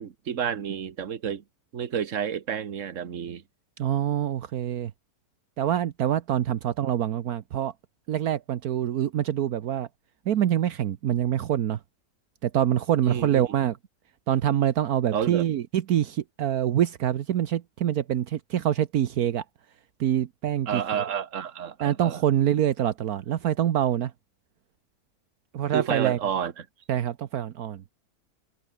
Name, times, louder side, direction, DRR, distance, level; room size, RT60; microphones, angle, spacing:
voice 1, 0.0-1.4 1.7-3.4 13.0-13.4 15.1-15.4 20.7-22.2 25.7-26.6, right 8 dB, 55° right, 1.6 m, -30 dB
voice 2, 3.8-4.9 5.6-7.7 8.1-9.9 10.3-11.8 12.4-13.8 14.3-19.4 20.0-21.0 21.8-24.1 25.5-26.2 26.9-27.8, right 10 dB, 75° right, 1.4 m, -25 dB
omnidirectional pair, 1.6 m